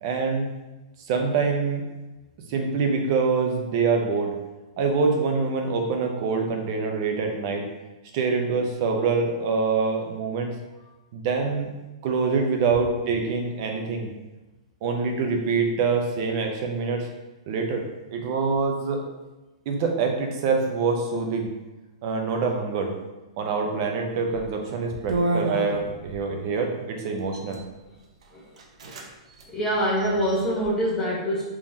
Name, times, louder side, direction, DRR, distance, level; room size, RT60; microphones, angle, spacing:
voice 1, 0.0-0.5 1.1-1.8 2.5-4.3 4.8-7.6 8.1-10.5 11.1-11.7 12.0-14.1 14.8-17.1 17.5-17.8 18.1-19.0 19.7-21.5 22.0-22.9 23.4-27.6, right 4 dB, 40° right, 3 dB, 0.5 m, -25 dB
sound 1, 24.3-24.5 25.1-26.2 27.2-27.6 28.2-28.3 28.6-29.1 29.3-29.5 30.0-30.7, right 2 dB, 80° right, 0.6 m, -30 dB
voice 2, 29.5-31.4, equal, 10° left, -6 dB, 0.8 m, -25 dB
3.6 x 3.0 x 2.6 m, 1.1 s
hypercardioid pair, 165°, 3 cm